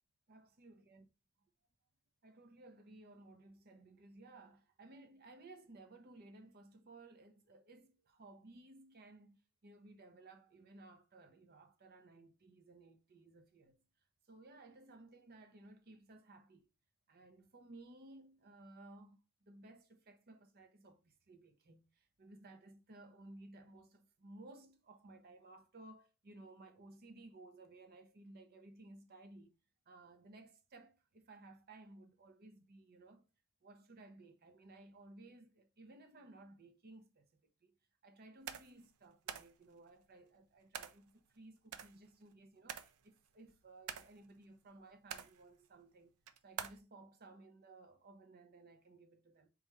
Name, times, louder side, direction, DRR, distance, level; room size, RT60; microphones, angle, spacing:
voice 1, 0.3-1.1 2.2-13.8 14.3-16.7 17.1-29.6 29.9-33.3 33.6-37.8 38.0-46.1 46.4-49.5, right 2 dB, 45° right, 0.7 m, -58 dB
sound 1, 38.5-38.8 39.3-39.6 40.7-41.0 41.7-42.3 42.7-43.1 43.5-44.3 44.9-45.4 46.3-46.8, right 8 dB, 85° right, 0.5 m, -46 dB
4.2 x 2.4 x 4.6 m
head